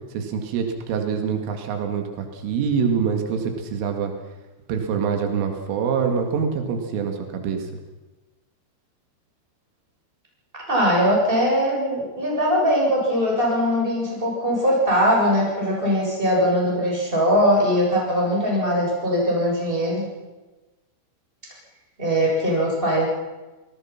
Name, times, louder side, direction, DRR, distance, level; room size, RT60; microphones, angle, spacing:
voice 1, 0.1-4.1 4.7-7.7, right 6 dB, 85° right, 4 dB, 4.7 m, -25 dB
voice 2, 10.7-20.1 22.0-23.1, equal, 10° right, -2 dB, 7.3 m, -21 dB
27.0 x 18.5 x 6.0 m, 1.1 s
omnidirectional pair, 5.6 m